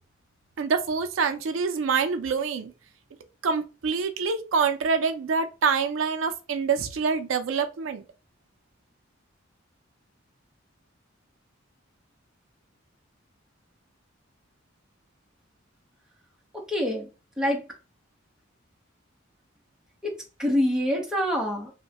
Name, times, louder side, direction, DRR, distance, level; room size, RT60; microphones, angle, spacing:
voice 1, 0.6-2.7 3.4-8.0, right 5 dB, 75° right, 0.4 m, -26 dB
voice 2, 16.5-17.1 17.4-17.6 20.0-20.1 20.4-21.7, equal, 5° right, 0.7 m, -25 dB
3.0 x 2.1 x 2.8 m
head